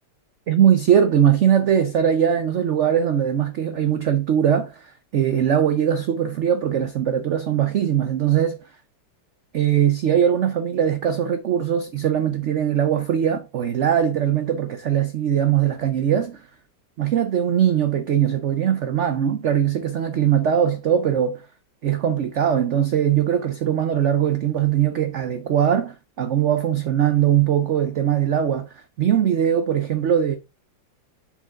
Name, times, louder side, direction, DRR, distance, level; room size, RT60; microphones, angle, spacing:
voice 1, 0.5-8.6 9.5-16.4 17.0-21.4 21.8-30.4, right 9 dB, 70° right, 0.6 m, -21 dB
7.0 x 4.7 x 3.6 m
omnidirectional pair, 2.0 m